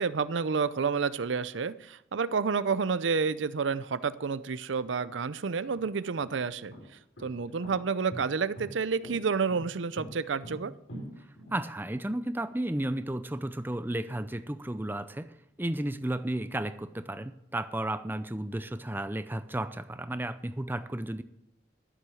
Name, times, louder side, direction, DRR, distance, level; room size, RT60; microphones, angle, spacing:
voice 1, 0.0-6.7 7.2-10.7, right 5 dB, 80° right, 15 dB, 0.6 m, -29 dB
sound 1, 5.7-12.0, equal, 85° left, 4.0 m, -44 dB
voice 2, 11.5-21.2, right 1 dB, 10° right, 12 dB, 0.5 m, -33 dB
13.0 x 7.6 x 6.4 m, 0.84 s
head